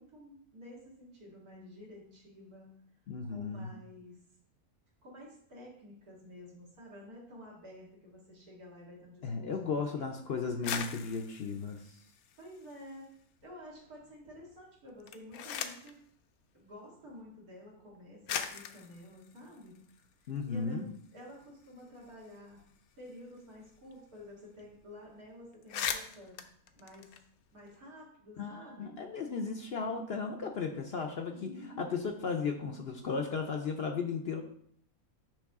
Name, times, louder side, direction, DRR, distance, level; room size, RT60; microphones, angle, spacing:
voice 1, 0.0-2.8 3.2-4.2 5.0-10.0 12.4-13.1 13.4-16.0 16.5-19.8 20.2-22.7 23.0-26.4 26.7-27.2 27.5-28.9 31.2-31.8, left 1 dB, 85° right, -4 dB, 2.5 m, -51 dB
voice 2, 3.1-3.7 9.2-12.0 20.3-21.0 28.4-34.4, left 5 dB, 60° left, 4 dB, 0.7 m, -35 dB
sound 1, 10.5-13.0 13.4-14.1 14.9-16.0 17.0-17.1 17.8-17.9 18.3-20.6 20.9-21.0 21.3-23.9 24.2-24.3 24.6-24.8 25.2-25.3 25.5-27.7, left 8 dB, 80° left, 1.0 m, -41 dB
9.9 x 3.3 x 3.6 m, 0.66 s
omnidirectional pair, 1.5 m